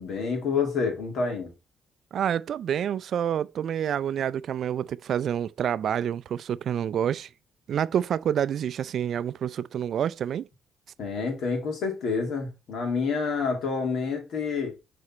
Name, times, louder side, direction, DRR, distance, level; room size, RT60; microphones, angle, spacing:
voice 1, 0.0-1.5 11.0-14.7, left 5 dB, 70° left, 2.5 m, -28 dB
voice 2, 2.1-7.3 7.7-10.5, right 9 dB, 65° right, 0.3 m, -28 dB
6.6 x 4.2 x 4.2 m
cardioid pair, 90°, 0 cm